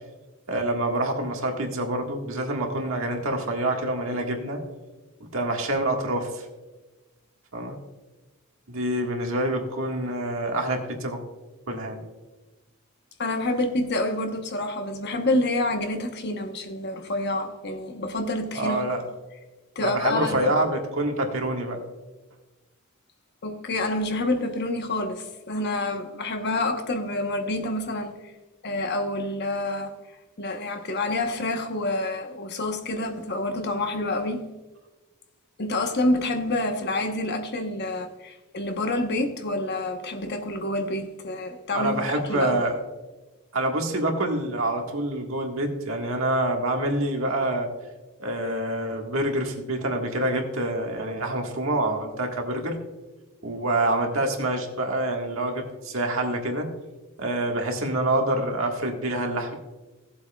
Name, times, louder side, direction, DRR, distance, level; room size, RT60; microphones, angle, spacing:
voice 1, 0.5-4.6 5.2-6.4 7.5-7.8 8.7-11.2 11.7-12.0 18.5-19.0 19.8-21.8 41.7-42.7 43.5-47.7 48.2-52.8 53.4-56.7 57.2-59.5, right 1 dB, 65° right, 1.7 m, -26 dB
voice 2, 13.2-19.0 19.7-20.6 23.4-28.3 28.6-29.9 30.4-34.4 35.6-42.6, left 2 dB, 50° left, 1.0 m, -28 dB
17.5 x 7.8 x 2.3 m
head